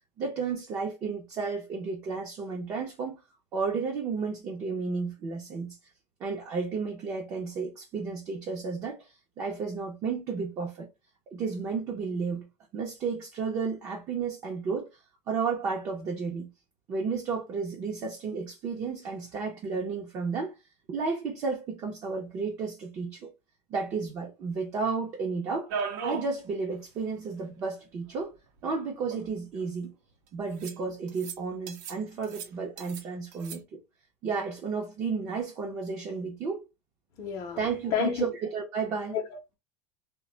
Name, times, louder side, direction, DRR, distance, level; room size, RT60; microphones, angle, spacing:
voice 1, 0.2-3.2 3.5-5.8 6.2-9.1 9.4-10.9 11.3-12.5 12.7-14.9 15.3-16.5 16.9-20.6 20.9-23.3 23.7-25.7 26.0-28.4 28.6-29.9 30.3-33.8 34.2-36.6 37.6-39.2, right 5 dB, 30° right, 0.6 m, -32 dB
sound 1, 25.7-26.3 26.7-26.8 27.0-27.1 28.2-28.3 29.0-29.7 30.6-30.8 31.1-31.4 31.7-32.0 32.2-33.0 33.3-33.6, right 5 dB, 80° right, 0.6 m, -36 dB
voice 2, 37.2-38.3 39.1-39.6, left 7 dB, 40° left, 0.6 m, -31 dB
2.2 x 2.0 x 3.7 m
supercardioid pair, 160°, 9 cm